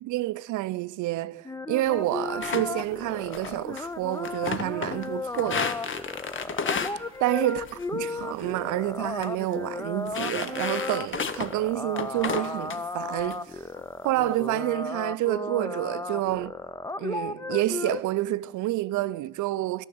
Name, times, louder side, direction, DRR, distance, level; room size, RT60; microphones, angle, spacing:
voice 1, 0.0-5.9 7.2-7.6 7.9-13.6 14.0-16.6 17.0-19.9, right 17 dB, 75° right, 0.5 m, -28 dB
sound 1, 1.4-18.0, left 3 dB, 10° left, 0.5 m, -35 dB
sound 2, 2.4-2.9 3.3-3.8 4.1-5.1 5.3-7.0 7.6-7.9 8.2-8.5 9.0-9.3 9.5-9.6 10.1-11.6 12.0-12.8 13.2-13.3 13.8-14.2, left 6 dB, 40° left, 0.8 m, -32 dB
12.0 x 6.1 x 8.5 m
supercardioid pair, 60°, 30 cm